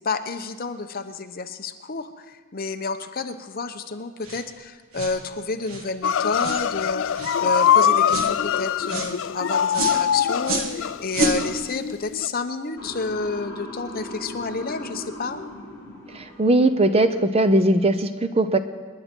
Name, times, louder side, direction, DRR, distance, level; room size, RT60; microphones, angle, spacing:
voice 1, 0.0-15.4, left 4 dB, 40° left, 8 dB, 0.8 m, -30 dB
sound 1, 4.2-4.4 4.9-5.2 5.6-5.9 6.4-6.7 7.1-7.4 8.1-8.3 8.9-9.1 9.7-10.0 10.4-10.7 11.1-11.4, right 2 dB, 75° right, 1.8 m, -28 dB
sound 2, 6.0-12.3, left 8 dB, 55° left, 0.3 m, -23 dB
Motor vehicle (road) / Siren, 12.8-16.9, left 1 dB, 15° left, 4.2 m, -38 dB
voice 2, 16.1-18.6, right 1 dB, 25° right, 10 dB, 0.6 m, -19 dB
27.5 x 10.5 x 4.5 m, 1.5 s
head